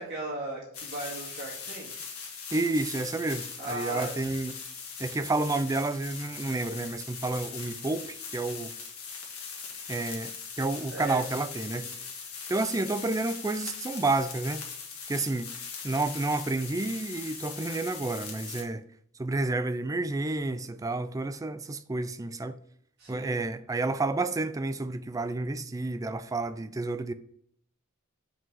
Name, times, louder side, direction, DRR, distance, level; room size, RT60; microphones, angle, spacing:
voice 1, 0.0-2.1 3.6-4.5 10.9-11.9 23.0-23.4, right 2 dB, 55° right, 2.0 m, -38 dB
sound 1, 0.7-18.6, left 5 dB, 85° left, 1.5 m, -40 dB
voice 2, 2.5-4.5 5.0-8.7 9.9-10.3 10.6-11.9 12.5-14.6 15.1-15.5 15.8-18.8 19.2-22.6 23.1-27.1, right 2 dB, 15° right, 0.4 m, -30 dB
5.8 x 5.0 x 4.8 m
head